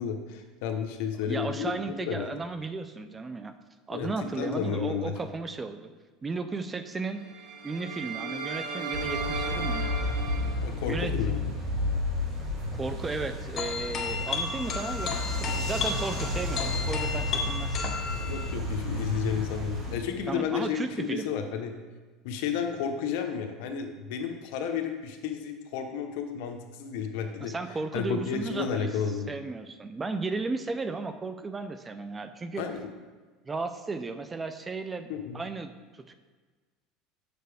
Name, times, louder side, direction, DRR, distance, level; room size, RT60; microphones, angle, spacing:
voice 1, 0.0-1.8 2.1-2.4 3.9-4.1 4.4-5.1 10.6-11.4 18.1-21.7 22.2-27.5 27.9-29.3 32.6-32.9 35.1-35.4, left 7 dB, 75° left, 5 dB, 0.9 m, -32 dB
voice 2, 1.2-3.5 3.9-5.9 6.2-7.2 7.6-9.9 10.9-11.1 12.7-18.0 20.3-21.3 27.4-28.9 29.3-32.6 33.5-35.7 36.1-36.2, right 3 dB, 15° right, 10 dB, 0.4 m, -34 dB
sound 1, 7.2-10.5, right 3 dB, 55° right, 0.9 m, -35 dB
sound 2, 8.9-19.9, left 2 dB, 35° right, 1.9 m, -32 dB
sound 3, 13.6-18.5, left 5 dB, 35° left, 0.9 m, -33 dB
7.5 x 6.8 x 3.4 m, 1.4 s
supercardioid pair, 140°, 0 cm